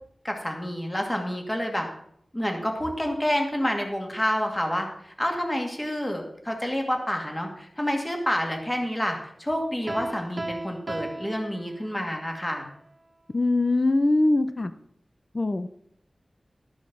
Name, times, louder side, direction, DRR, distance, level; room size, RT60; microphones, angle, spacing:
voice 1, 0.2-1.9 2.3-12.7, equal, 15° left, 2 dB, 2.1 m, -28 dB
Piano, 9.9-12.2, right 2 dB, 50° right, 1.2 m, -36 dB
voice 2, 13.3-14.7 15.3-15.7, left 2 dB, 40° left, 10 dB, 0.6 m, -22 dB
13.0 x 6.4 x 6.1 m, 0.71 s
wide cardioid pair, 75°, 0 cm